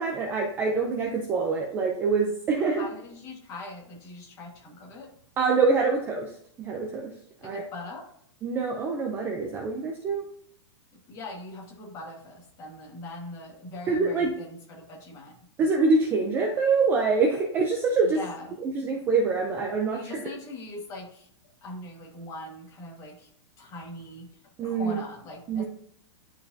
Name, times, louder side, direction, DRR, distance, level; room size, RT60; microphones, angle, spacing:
voice 1, 0.0-2.8 5.4-6.3 6.6-7.1 7.4-7.6 8.4-10.2 13.9-14.3 15.6-18.2 18.7-20.2 24.6-25.0 25.5-25.6, right 4 dB, 15° right, 1 dB, 0.5 m, -25 dB
voice 2, 2.6-5.1 7.4-8.1 11.1-15.3 18.0-18.5 19.9-21.3 21.6-23.3 23.6-24.3 24.6-25.7, left 2 dB, 20° left, -2 dB, 1.7 m, -41 dB
11.0 x 4.6 x 2.7 m, 0.68 s
supercardioid pair, 170°, 15 cm